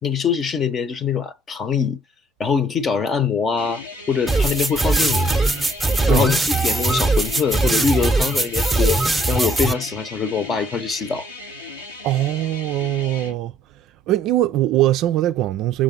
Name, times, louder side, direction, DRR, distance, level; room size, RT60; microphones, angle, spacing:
voice 1, 0.0-2.0 2.4-5.3 6.1-9.0 9.3-11.3, left 6 dB, 30° left, 0.9 m, -23 dB
sound 1, 3.6-13.3, left 3 dB, 90° left, 1.4 m, -37 dB
sound 2, 4.3-9.7, right 2 dB, 5° right, 0.8 m, -20 dB
voice 2, 12.0-13.5 14.1-15.8, right 14 dB, 50° right, 0.4 m, -21 dB
6.3 x 3.5 x 5.3 m
hypercardioid pair, 85°, 0 cm